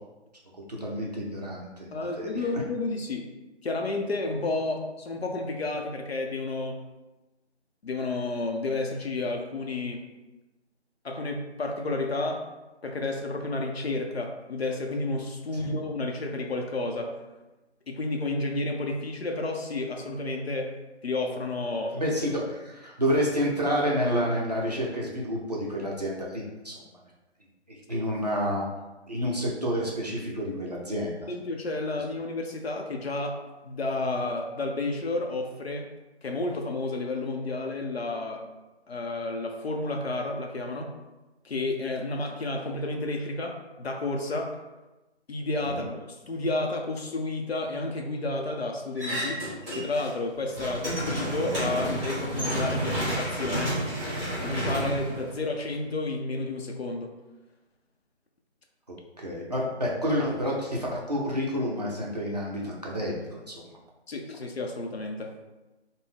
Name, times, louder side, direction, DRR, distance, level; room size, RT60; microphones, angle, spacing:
voice 1, 0.8-2.3 15.6-15.7 21.9-26.8 27.9-28.7 29.1-31.3 45.6-45.9 59.2-63.5, equal, 35° right, -3 dB, 0.5 m, -29 dB
voice 2, 1.9-3.3 3.6-6.8 7.8-10.0 11.0-12.4 12.8-17.2 17.9-20.8 21.0-22.0 27.9-28.0 31.3-35.9 36.2-38.4 38.9-40.9 41.4-44.5 45.3-49.4 49.8-53.8 54.4-57.1 64.1-65.3, left 2 dB, 60° left, 3 dB, 0.6 m, -31 dB
sound 1, 49.0-50.1 50.4-55.8, equal, 10° right, 1.4 m, -31 dB
3.5 x 2.0 x 3.6 m, 1.1 s
figure-of-eight pair, 160°, 34 cm